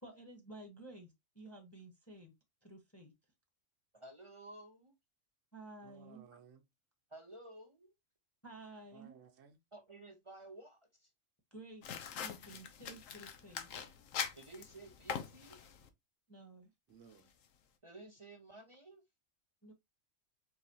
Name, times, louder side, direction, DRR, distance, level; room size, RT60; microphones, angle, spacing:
voice 1, 0.0-2.3 2.6-3.1 5.5-6.2 8.4-9.2 11.5-13.7 16.3-16.7 19.6-19.7, right 2 dB, 10° left, 1.1 m, -53 dB
voice 2, 3.9-4.9 6.3-6.4 7.1-7.9 9.7-11.1 14.4-15.6 17.8-19.0, right 2 dB, 30° right, 0.7 m, -54 dB
voice 3, 5.8-6.6 8.9-9.6 16.9-17.3, right 7 dB, 75° right, 1.3 m, -59 dB
sound 1, 11.8-15.9, left 7 dB, 80° left, 1.2 m, -43 dB
4.7 x 3.9 x 2.8 m
omnidirectional pair, 1.3 m